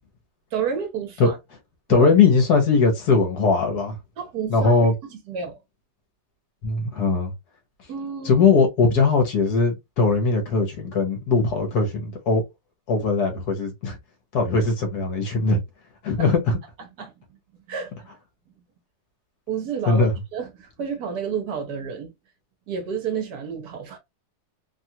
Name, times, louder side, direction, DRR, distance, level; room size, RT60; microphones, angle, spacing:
voice 1, 0.5-1.4 1.9-2.1 4.2-5.6 7.9-8.5 16.2-16.3 16.8-17.1 17.7-18.1 19.5-22.1 22.7-24.0, right 6 dB, 65° right, 1.2 m, -30 dB
voice 2, 1.9-3.9 4.5-4.9 6.6-7.3 8.2-12.4 12.9-14.0 14.3-15.6 16.0-16.4 19.9-20.1, left 4 dB, 65° left, 1.3 m, -20 dB
3.1 x 2.3 x 2.7 m
omnidirectional pair, 1.9 m